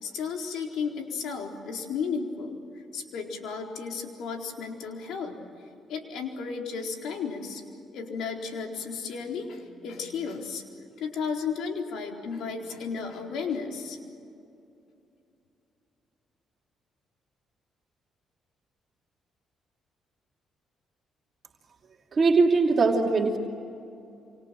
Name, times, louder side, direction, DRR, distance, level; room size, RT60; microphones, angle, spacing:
voice 1, 0.0-2.6 2.9-5.4 5.9-7.6 7.9-10.6 11.0-14.0, left 5 dB, 80° left, 2 dB, 4.2 m, -33 dB
voice 2, 22.2-23.4, right 4 dB, 45° right, 0 dB, 2.8 m, -21 dB
27.0 x 26.5 x 7.7 m, 2.6 s
cardioid pair, 90°, 0 cm